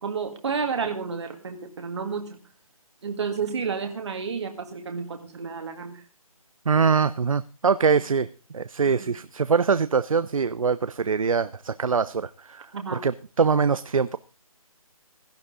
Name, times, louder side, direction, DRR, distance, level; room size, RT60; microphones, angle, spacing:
voice 1, 0.0-2.3 3.0-6.0 9.0-9.2 12.7-13.0, right 5 dB, 50° right, 4 dB, 1.9 m, -31 dB
voice 2, 6.7-8.3 8.5-12.7 13.0-14.2, right 5 dB, 65° right, 14 dB, 0.7 m, -23 dB
17.0 x 12.0 x 3.8 m, 0.35 s
figure-of-eight pair, 155°, 19 cm